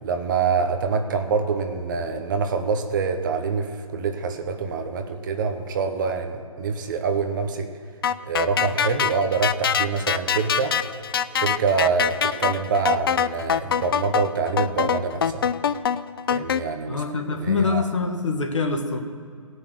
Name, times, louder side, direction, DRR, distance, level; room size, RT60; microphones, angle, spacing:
voice 1, 0.0-7.7 8.2-10.7 11.3-15.5 16.3-17.0 17.4-17.8, right 5 dB, 35° right, 6 dB, 1.1 m, -25 dB
sound 1, 8.0-16.6, left 8 dB, 40° left, 0.5 m, -24 dB
voice 2, 16.9-19.0, left 4 dB, 55° left, 4 dB, 1.8 m, -24 dB
16.5 x 6.3 x 7.9 m, 2.3 s
figure-of-eight pair, 140°, 18 cm